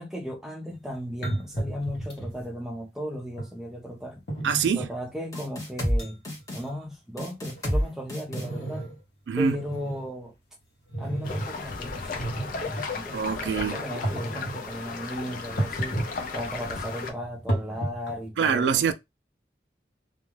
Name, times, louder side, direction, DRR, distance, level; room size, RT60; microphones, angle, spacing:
voice 1, 0.0-4.2 4.7-6.2 6.5-8.9 9.4-10.3 11.0-16.0 16.3-18.9, equal, 5° right, 0.5 m, -36 dB
sound 1, 0.7-0.8 1.2-2.4 3.4-3.5 4.3-4.9 5.5-5.6 6.0-6.1 6.4-6.7 7.2-9.0 9.4-10.1 10.9-11.5 12.0-12.9 13.9-14.6 15.6-16.2 16.5-18.3, right 1 dB, 70° left, 0.9 m, -32 dB
voice 2, 4.4-4.8 9.3-9.6 13.1-13.8 18.4-18.9, right 6 dB, 80° right, 0.3 m, -24 dB
sound 2, 5.3-6.0 6.2-6.6 7.2-7.8 8.1-8.5, equal, 20° left, 1.0 m, -28 dB
sound 3, 11.2-17.1, left 4 dB, 50° left, 0.5 m, -35 dB
2.3 x 2.2 x 3.2 m
head